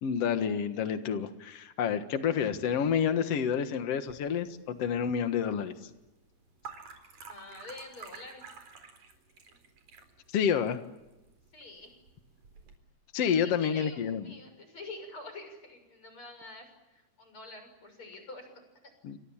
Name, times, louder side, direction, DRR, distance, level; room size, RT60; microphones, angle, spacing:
voice 1, 0.0-5.7 10.3-10.8 13.1-14.3 19.0-19.2, left 7 dB, 80° left, 8 dB, 1.4 m, -29 dB
sound 1, 4.1-12.8, right 5 dB, 40° right, 5.2 m, -51 dB
voice 2, 7.3-8.5 11.5-12.0 13.4-18.6, left 2 dB, 25° left, 7 dB, 7.0 m, -47 dB
29.0 x 26.5 x 7.3 m, 1.0 s
omnidirectional pair, 5.2 m